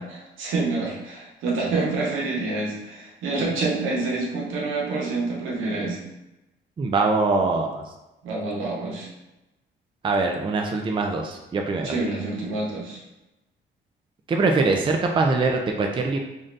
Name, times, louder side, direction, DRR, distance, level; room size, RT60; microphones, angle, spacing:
voice 1, 0.1-6.0 8.2-9.1 11.8-13.0, right 3 dB, 85° right, -3 dB, 1.0 m, -27 dB
voice 2, 6.8-7.8 10.0-11.9 14.3-16.2, right 3 dB, 25° right, 2 dB, 0.4 m, -23 dB
3.3 x 2.6 x 2.5 m, 0.97 s
cardioid pair, 90°, 20 cm